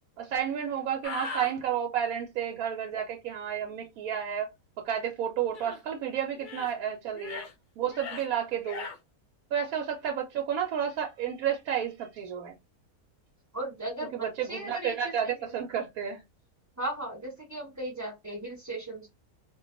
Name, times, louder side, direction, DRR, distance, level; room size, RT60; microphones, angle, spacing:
voice 1, 0.2-4.5 4.8-7.4 7.8-8.9 9.5-12.6 14.1-16.2, right 8 dB, 75° right, 1.1 m, -31 dB
sound 1, 1.0-1.5 5.5-5.8 6.3-6.7 7.1-7.5 7.9-8.3 8.6-9.0, left 4 dB, 55° left, 0.5 m, -39 dB
voice 2, 13.5-15.1 16.8-19.1, right 1 dB, 10° right, 1.2 m, -36 dB
2.4 x 2.3 x 3.8 m
omnidirectional pair, 1.6 m